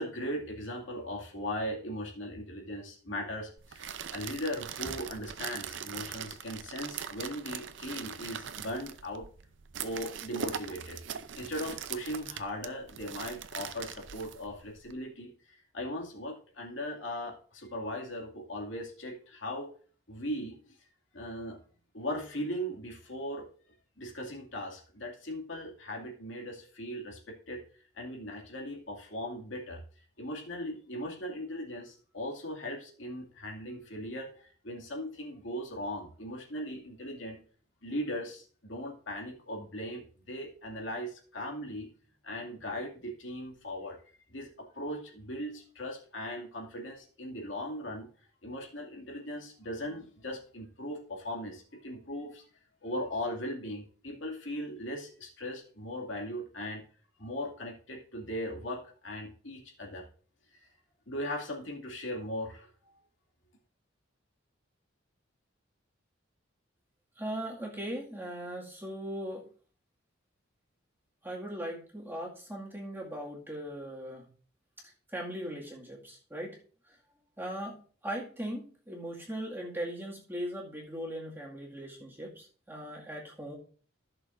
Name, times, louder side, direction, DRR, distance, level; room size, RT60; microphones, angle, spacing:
voice 1, 0.0-9.2 9.8-11.0 11.4-19.7 20.1-20.8 21.1-21.6 21.9-23.5 24.0-27.6 27.9-29.8 30.2-37.4 37.8-41.9 42.2-44.0 44.3-48.1 48.4-52.4 52.8-56.8 57.2-60.1 61.1-62.9, equal, 70° left, 0 dB, 2.4 m, -38 dB
sound 1, 3.6-14.9, right 8 dB, 65° right, 0.6 m, -41 dB
voice 2, 67.2-69.5 71.2-74.3 75.1-76.6 76.9-77.0 77.4-77.8 78.0-83.5, right 1 dB, 10° right, -3 dB, 2.1 m, -39 dB
15.0 x 6.5 x 2.6 m, 0.43 s
head